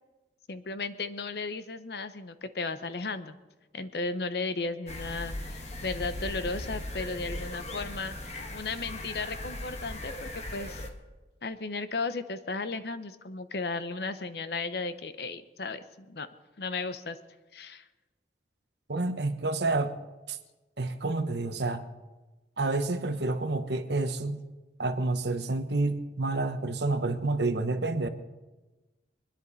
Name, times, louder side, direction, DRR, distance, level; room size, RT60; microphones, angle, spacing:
voice 1, 0.5-3.4 3.7-10.9 11.4-16.3 16.6-17.2 17.5-17.8, left 3 dB, 60° left, 12 dB, 0.8 m, -35 dB
sound 1, 4.9-10.9, left 1 dB, 35° left, 1.4 m, -38 dB
voice 2, 18.9-19.9 20.3-20.4 20.8-21.9 22.6-24.4 24.8-28.1, right 2 dB, 70° right, 8 dB, 1.1 m, -29 dB
24.0 x 10.5 x 4.1 m, 1.2 s
head